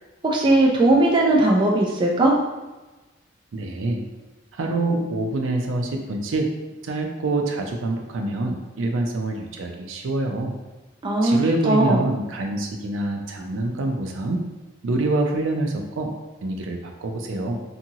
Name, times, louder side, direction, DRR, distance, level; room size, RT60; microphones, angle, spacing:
voice 1, 0.2-2.3 11.0-11.4 11.7-12.0, right 2 dB, 25° right, -2 dB, 0.3 m, -18 dB
voice 2, 3.5-4.0 4.5-6.5 6.8-10.5 11.2-14.4 14.8-16.1 16.4-17.6, right 2 dB, 85° right, 3 dB, 0.4 m, -26 dB
2.7 x 2.6 x 2.7 m, 1.1 s
head